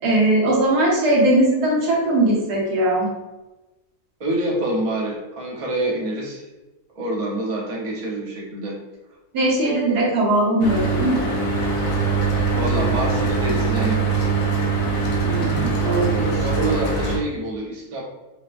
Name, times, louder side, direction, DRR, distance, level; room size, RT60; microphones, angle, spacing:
voice 1, 0.0-3.1 9.3-11.3 15.2-16.3, right 1 dB, 80° right, -4 dB, 1.6 m, -20 dB
voice 2, 4.2-6.5 6.9-8.8 12.5-14.3 16.4-18.0, right 1 dB, 30° right, -4 dB, 0.7 m, -26 dB
Mechanical fan, 10.6-17.2, right 4 dB, 80° left, 1.3 m, -22 dB
5.8 x 2.2 x 2.5 m, 1.1 s
omnidirectional pair, 1.7 m